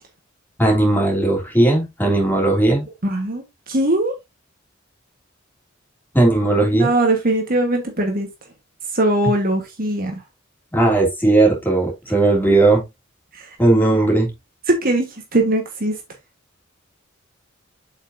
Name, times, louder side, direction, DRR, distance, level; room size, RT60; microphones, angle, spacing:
voice 1, 0.6-2.8 6.1-6.9 10.7-12.8 13.6-14.3, right 2 dB, 10° left, 3.3 m, -16 dB
voice 2, 3.0-4.1 6.7-8.3 8.9-10.2 13.3-13.5 14.7-15.1 15.3-15.9, right 1 dB, 45° right, 1.6 m, -20 dB
7.5 x 5.7 x 2.8 m
head